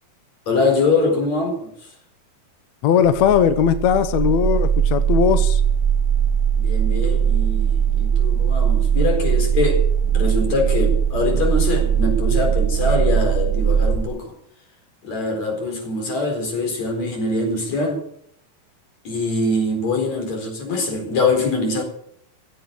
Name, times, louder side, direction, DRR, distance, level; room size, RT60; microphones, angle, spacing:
voice 1, 0.5-2.0 6.6-14.3 15.0-18.0 19.0-21.8, left 3 dB, 45° left, 5.5 m, -23 dB
voice 2, 2.8-5.6, left 8 dB, 75° left, 1.6 m, -18 dB
sound 1, 3.0-14.0, right 8 dB, 20° right, 1.9 m, -19 dB
16.0 x 8.9 x 8.9 m
omnidirectional pair, 4.3 m